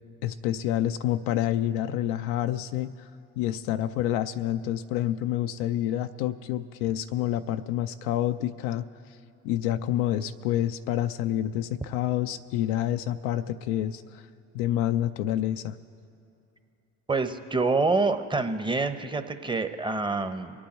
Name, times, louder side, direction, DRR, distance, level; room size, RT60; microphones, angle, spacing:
voice 1, 0.2-2.9 3.4-8.9 9.4-14.2 14.5-15.8, left 12 dB, 80° left, 8 dB, 0.5 m, -28 dB
voice 2, 17.1-20.5, right 3 dB, 15° right, 9 dB, 0.9 m, -26 dB
23.5 x 8.7 x 4.4 m, 2.8 s
hypercardioid pair, 65°, 35 cm